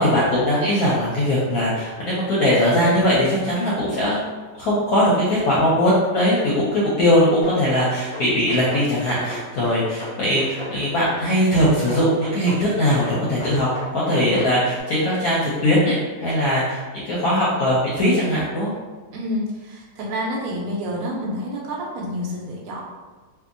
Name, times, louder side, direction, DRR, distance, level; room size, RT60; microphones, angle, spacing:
voice 1, 0.0-4.3 4.6-13.7 13.9-18.7, equal, 70° left, -7 dB, 1.0 m, -20 dB
sound 1, 7.4-8.9 9.2-10.8 11.1-12.6 12.9-14.5, left 1 dB, 45° left, 0.4 m, -34 dB
voice 2, 19.1-22.8, equal, 70° right, -2 dB, 1.0 m, -28 dB
2.7 x 2.5 x 2.5 m, 1.3 s
omnidirectional pair, 1.9 m